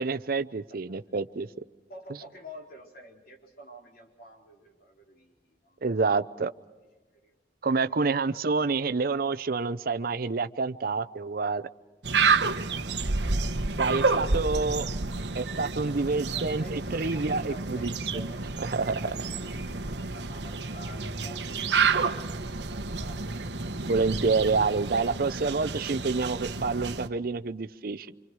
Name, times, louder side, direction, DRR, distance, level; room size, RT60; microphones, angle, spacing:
voice 1, 0.0-1.5 5.8-6.5 7.6-11.6 13.8-14.8 15.3-17.9 18.6-19.0 23.9-28.1, right 4 dB, 55° right, 13 dB, 0.6 m, -28 dB
voice 2, 1.9-5.9 7.1-7.3 9.2-9.4 14.5-14.9 16.1-18.5 18.9-21.9 22.2-23.3, equal, 55° left, 0 dB, 4.3 m, -49 dB
sound 1, 12.0-27.1, right 4 dB, 75° right, 1.1 m, -29 dB
26.5 x 26.0 x 4.7 m, 1.2 s
head